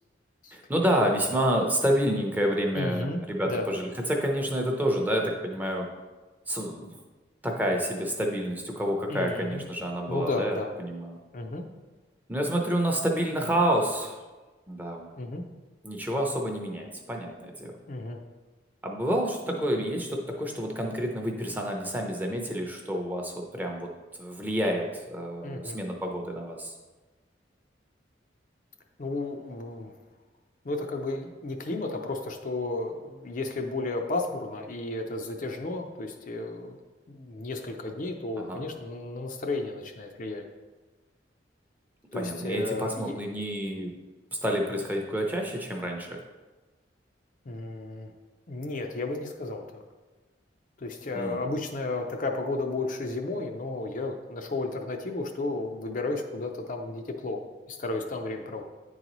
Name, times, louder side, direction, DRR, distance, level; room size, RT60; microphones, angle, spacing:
voice 1, 0.5-5.9 6.5-6.9 7.4-11.2 12.3-14.2 14.7-15.1 15.8-17.7 18.8-23.9 24.2-26.7 38.4-38.6 42.1-43.9 44.4-46.2 51.1-51.4, equal, 10° right, 1 dB, 0.6 m, -29 dB
voice 2, 2.7-3.7 9.1-9.6 10.1-10.7 11.3-11.6 15.2-15.4 17.9-18.2 19.5-19.7 25.4-25.8 29.0-29.9 30.6-36.8 37.1-40.4 42.1-43.2 47.4-48.1 48.5-49.8 50.8-58.6, left 2 dB, 45° left, 3 dB, 0.5 m, -33 dB
9.7 x 3.9 x 3.0 m, 1.3 s
head